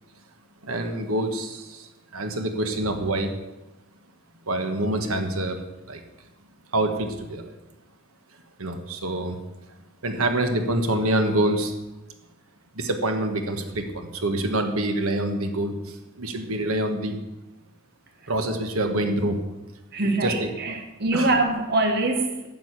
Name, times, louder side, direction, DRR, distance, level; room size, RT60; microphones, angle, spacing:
voice 1, 0.6-3.3 4.5-5.6 5.9-6.0 6.7-7.5 8.6-9.4 10.0-11.7 12.7-17.2 18.3-19.4 20.2-20.5 21.1-21.3, right 1 dB, 85° right, 6 dB, 1.5 m, -26 dB
voice 2, 19.9-22.5, right 2 dB, 50° right, 5 dB, 1.2 m, -24 dB
9.3 x 8.0 x 8.2 m, 1.0 s
head